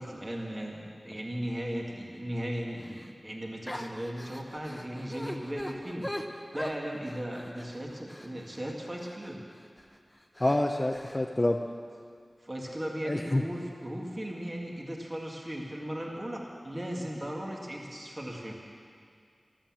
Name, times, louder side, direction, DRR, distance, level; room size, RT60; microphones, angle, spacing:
voice 1, 0.0-6.1 6.5-9.4 12.4-18.5, equal, 30° right, -1 dB, 2.1 m, -37 dB
sound 1, 2.8-3.1 3.7-9.3 9.8-10.0 10.4-11.2, equal, 10° left, 1.1 m, -41 dB
voice 2, 10.4-11.6 13.1-13.4, left 1 dB, 25° left, 3 dB, 0.7 m, -27 dB
13.5 x 12.5 x 7.6 m, 2.2 s
wide cardioid pair, 65°, 0 cm